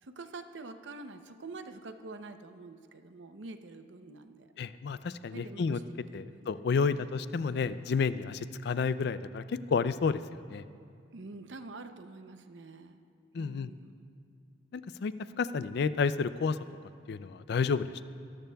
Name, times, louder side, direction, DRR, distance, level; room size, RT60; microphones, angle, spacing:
voice 1, 0.0-4.5 5.3-6.6 6.9-7.1 11.1-13.0 13.4-14.1, right 3 dB, 70° right, 8 dB, 0.7 m, -46 dB
voice 2, 4.6-5.8 6.1-10.2 10.5-10.6 13.3-13.7 14.7-16.6 17.1-18.0, left 5 dB, 60° left, 14 dB, 0.4 m, -30 dB
22.5 x 13.5 x 2.3 m, 2.3 s
head